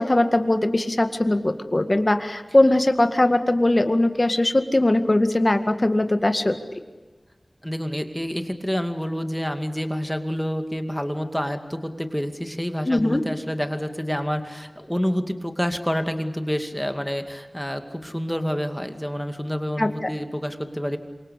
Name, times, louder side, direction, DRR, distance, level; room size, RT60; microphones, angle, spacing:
voice 1, 0.0-6.6 12.9-13.2 19.8-20.1, left 1 dB, 35° left, 8 dB, 2.0 m, -20 dB
voice 2, 7.6-21.0, equal, 5° left, 7 dB, 2.4 m, -28 dB
27.5 x 24.5 x 8.4 m, 1.3 s
wide cardioid pair, 55°, 0 cm